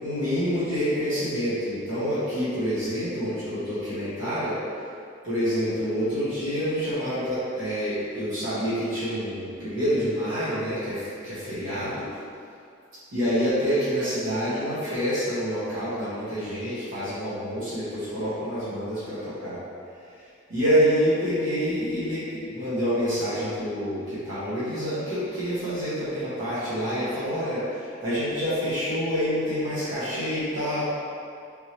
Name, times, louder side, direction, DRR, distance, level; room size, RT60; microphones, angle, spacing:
voice 1, 0.0-4.6 5.2-12.0 13.1-19.6 20.5-30.8, equal, 75° right, -12 dB, 1.1 m, -27 dB
3.5 x 2.9 x 2.9 m, 2.4 s
head